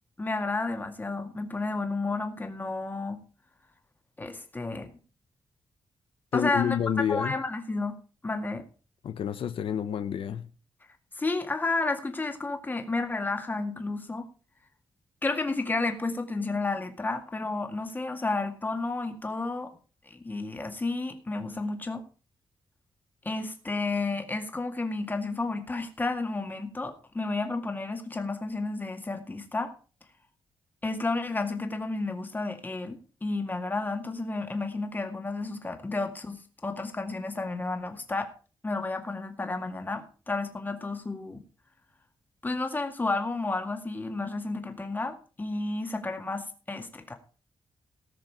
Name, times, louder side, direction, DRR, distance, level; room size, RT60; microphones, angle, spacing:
voice 1, 0.2-3.2 4.2-4.9 6.3-6.8 7.1-7.9 8.2-8.7 11.2-14.3 15.2-19.7 20.1-22.0 23.2-29.7 30.8-38.3 38.6-41.4 42.4-47.2, left 3 dB, 20° left, 2.1 m, -31 dB
voice 2, 6.3-7.4 9.0-10.5, left 8 dB, 85° left, 0.9 m, -29 dB
18.0 x 6.6 x 4.8 m
wide cardioid pair, 135°, 9 cm